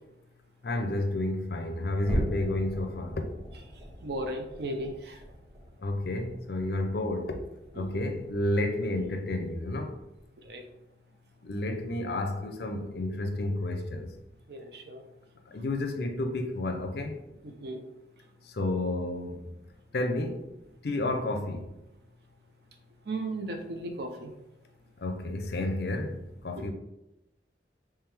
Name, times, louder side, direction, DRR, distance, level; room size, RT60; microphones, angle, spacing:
voice 1, 0.6-3.3 5.8-7.4 7.7-10.0 11.4-14.1 15.5-17.2 18.5-19.5 19.9-20.5 20.8-21.7 25.0-26.7, left 2 dB, 55° left, 0.5 m, -31 dB
sound 1, 2.0-8.7 9.0-9.3 9.7-9.9 10.4-10.6, equal, 25° right, 1.2 m, -39 dB
voice 2, 4.0-5.2 7.8-7.9 10.5-10.6 14.5-15.0 17.4-17.8 23.1-24.3 26.6-26.7, right 1 dB, 60° right, 0.5 m, -35 dB
3.5 x 3.2 x 3.2 m
head